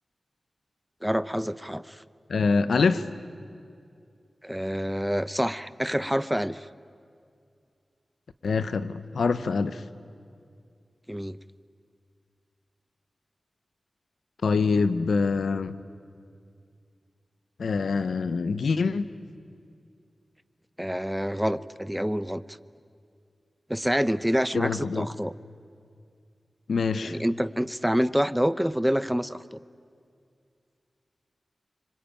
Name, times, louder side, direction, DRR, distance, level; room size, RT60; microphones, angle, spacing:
voice 1, 1.0-2.0 4.4-6.7 11.1-11.4 20.8-22.4 23.7-25.3 27.0-29.6, equal, 5° right, 15 dB, 0.8 m, -27 dB
voice 2, 2.3-3.1 8.4-9.8 14.4-15.8 17.6-19.1 24.5-25.1 26.7-27.2, left 4 dB, 90° left, 13 dB, 1.0 m, -25 dB
26.0 x 25.5 x 9.0 m, 2.3 s
cardioid pair, 45°, 0 cm